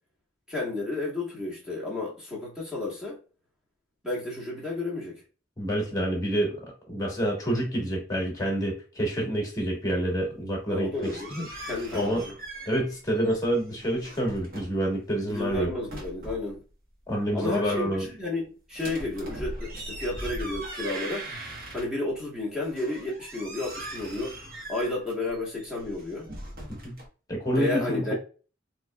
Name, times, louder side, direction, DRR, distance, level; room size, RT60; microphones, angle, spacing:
voice 1, 0.5-3.2 4.0-5.2 10.7-11.3 11.6-12.3 15.3-16.6 17.3-21.3 21.7-24.4 24.7-26.3 27.5-28.1, left 2 dB, 5° right, 1.3 m, -32 dB
voice 2, 5.6-6.6 6.9-11.5 11.9-12.2 12.7-15.7 17.1-18.1 26.7-26.9 27.3-28.0, right 1 dB, 15° left, 1.4 m, -28 dB
sound 1, 10.7-13.0 13.2-14.8 15.3-16.5 18.7-22.2 22.6-27.0, right 1 dB, 45° right, 1.1 m, -40 dB
4.0 x 3.0 x 2.2 m
head